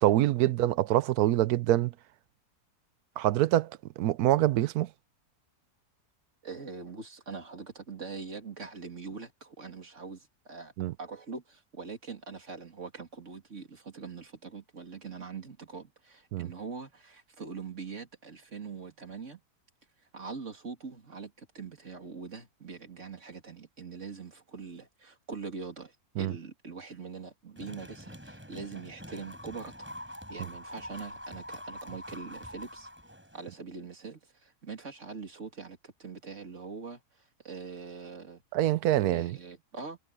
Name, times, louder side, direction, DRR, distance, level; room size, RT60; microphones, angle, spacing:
voice 1, 0.0-1.9 3.2-3.7 4.0-4.9 10.8-10.9 16.3-16.5 26.2-26.3 38.5-39.4, right 13 dB, 80° right, 1.1 m, -25 dB
voice 2, 6.4-10.7 11.0-19.4 20.1-29.9 30.3-32.9 33.3-37.0 37.4-38.4 39.0-40.0, right 4 dB, 50° right, 3.2 m, -43 dB
sound 1, 27.6-33.6, equal, 5° right, 7.4 m, -45 dB
omnidirectional pair, 1.7 m